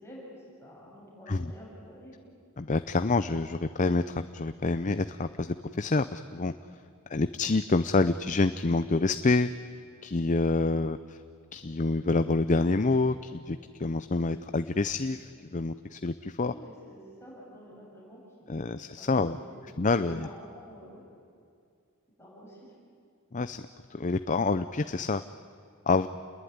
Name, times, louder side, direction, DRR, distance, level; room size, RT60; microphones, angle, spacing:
voice 1, 0.0-2.2 16.4-19.2 19.5-21.2 22.2-22.7, equal, 10° left, -5 dB, 7.1 m, -49 dB
voice 2, 2.6-6.5 7.1-9.5 10.0-11.2 11.5-16.5 18.5-19.4 19.8-20.3 23.3-23.6 23.9-25.2 25.9-26.1, left 3 dB, 35° left, 11 dB, 0.6 m, -27 dB
29.0 x 21.5 x 9.6 m, 2.3 s
head